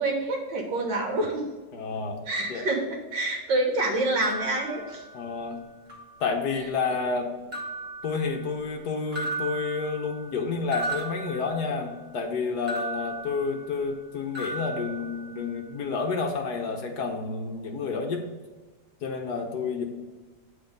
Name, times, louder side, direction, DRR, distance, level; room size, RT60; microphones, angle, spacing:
voice 1, 0.0-1.4 2.3-5.0, right 2 dB, 75° right, 1 dB, 2.1 m, -27 dB
voice 2, 1.7-2.7 5.1-5.6 6.2-7.3 8.0-18.2 19.0-19.8, left 4 dB, 65° left, 3 dB, 1.4 m, -30 dB
sound 1, 4.2-5.5 5.9-6.7 7.5-8.8 9.1-12.1 12.7-14.1 14.3-15.7, right 3 dB, 25° right, 1.5 m, -37 dB
8.7 x 4.0 x 5.2 m, 1.3 s
omnidirectional pair, 2.0 m